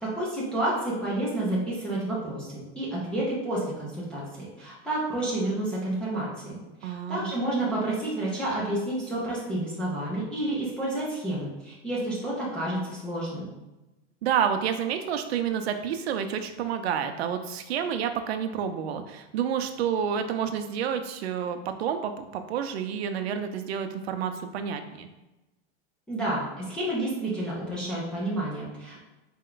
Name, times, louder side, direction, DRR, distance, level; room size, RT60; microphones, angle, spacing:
voice 1, 0.0-13.5 26.1-29.0, right 1 dB, 5° left, -8 dB, 0.3 m, -30 dB
voice 2, 6.8-7.3 14.2-25.1, right 8 dB, 85° right, 8 dB, 0.6 m, -29 dB
4.3 x 2.2 x 3.8 m, 1.0 s
supercardioid pair, 165°, 31 cm